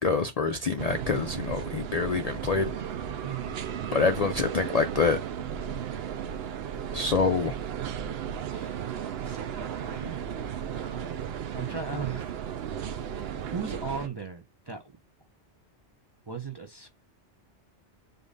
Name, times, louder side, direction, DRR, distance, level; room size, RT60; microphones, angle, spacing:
voice 1, 0.0-2.7 3.9-5.2 6.9-7.6, left 4 dB, 55° left, 0.4 m, -26 dB
sound 1, 0.8-14.1, right 9 dB, 65° right, 0.8 m, -35 dB
voice 2, 3.2-4.0 8.5-12.4 13.5-14.9 16.3-16.9, right 5 dB, 30° right, 0.5 m, -38 dB
5.3 x 2.5 x 3.8 m
omnidirectional pair, 1.2 m